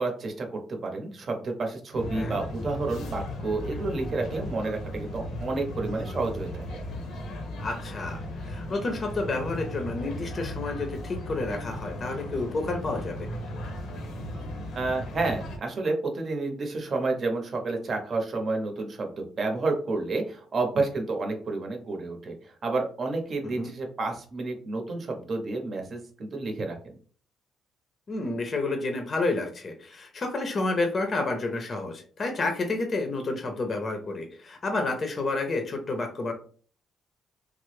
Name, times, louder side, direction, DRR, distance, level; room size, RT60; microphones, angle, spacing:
voice 1, 0.0-6.8 14.7-22.3 22.6-26.9, right 3 dB, 45° right, 3 dB, 0.8 m, -30 dB
sound 1, 1.9-15.6, left 1 dB, 80° left, 0.7 m, -36 dB
voice 2, 7.6-13.3 23.4-23.7 28.1-36.3, left 2 dB, 40° left, 5 dB, 0.6 m, -30 dB
3.2 x 2.0 x 3.1 m, 0.43 s
cardioid pair, 90°, 0 cm